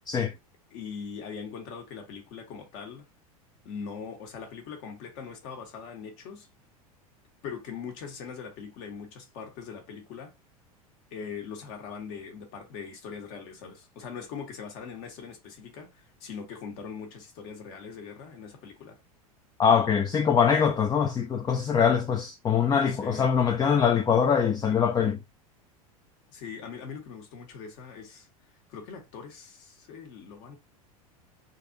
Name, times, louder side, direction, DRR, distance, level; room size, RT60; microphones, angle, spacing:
voice 1, 0.7-3.1 3.6-6.5 7.4-10.3 11.1-19.0 22.9-23.3 26.3-28.3 28.7-30.6, left 6 dB, 55° left, 1.5 m, -41 dB
voice 2, 19.6-25.2, left 7 dB, 20° left, 0.4 m, -23 dB
3.9 x 2.6 x 2.7 m
hypercardioid pair, 90°, 19 cm